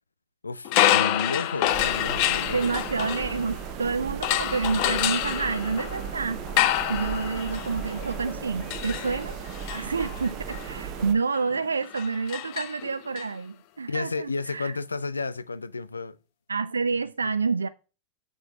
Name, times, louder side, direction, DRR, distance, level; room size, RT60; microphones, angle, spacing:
voice 1, 0.4-2.7 13.9-16.2 17.2-17.3, left 4 dB, 80° left, 0.4 m, -32 dB
sound 1, 0.6-3.7 4.2-13.2, left 13 dB, 45° left, 0.7 m, -28 dB
sound 2, 1.7-11.1, right 9 dB, 40° right, 0.8 m, -36 dB
voice 2, 2.5-9.4 9.7-14.7 16.5-17.7, right 4 dB, 75° right, 0.3 m, -28 dB
8.0 x 6.6 x 3.8 m
figure-of-eight pair, 90°, 0 cm